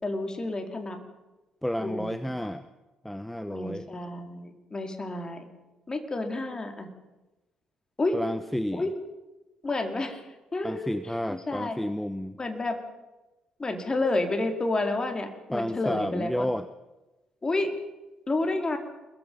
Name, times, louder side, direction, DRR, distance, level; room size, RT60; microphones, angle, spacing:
voice 1, 0.0-1.0 1.8-2.5 3.5-5.4 5.9-6.9 8.0-8.2 8.7-8.9 9.6-10.2 10.5-10.9 11.3-11.8 12.4-12.8 13.6-16.5 17.4-17.7 18.3-18.8, left 2 dB, 25° left, 5 dB, 4.3 m, -30 dB
voice 2, 1.6-2.7 3.0-3.9 8.1-8.9 10.6-12.4 15.5-16.7, equal, 5° left, 12 dB, 1.1 m, -31 dB
27.5 x 22.0 x 5.5 m, 1.1 s
figure-of-eight pair, 45°, 3 cm